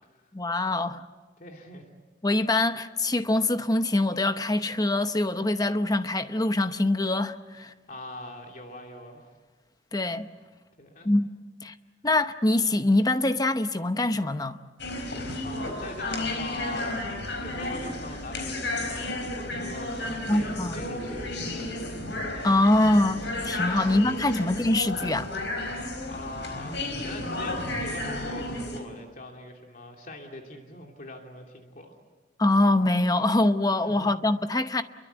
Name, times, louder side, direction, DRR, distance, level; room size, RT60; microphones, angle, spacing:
voice 1, 0.3-1.0 2.2-7.7 9.9-10.3 11.0-11.3 11.6-11.7 12.0-14.6 20.3-20.8 22.4-25.3 32.4-34.8, left 2 dB, 20° left, 0.9 m, -24 dB
voice 2, 1.4-1.9 7.9-9.3 10.8-11.1 14.9-21.9 23.7-24.4 25.7-31.9 33.8-34.1, left 2 dB, 45° left, 2.7 m, -42 dB
sound 1, 14.8-28.8, left 1 dB, 75° left, 4.5 m, -33 dB
29.0 x 23.0 x 8.1 m
head